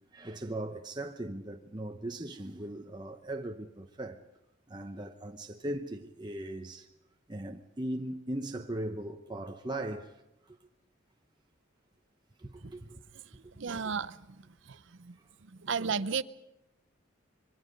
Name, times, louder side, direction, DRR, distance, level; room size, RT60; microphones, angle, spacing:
voice 1, 0.1-4.2 4.7-6.9 7.3-10.2 10.5-10.6 12.4-13.0 13.4-13.5, right 1 dB, 20° right, 0.8 m, -39 dB
voice 2, 13.6-14.2 14.7-15.2 15.4-16.2, right 5 dB, 65° right, 0.7 m, -34 dB
26.0 x 23.0 x 5.3 m
head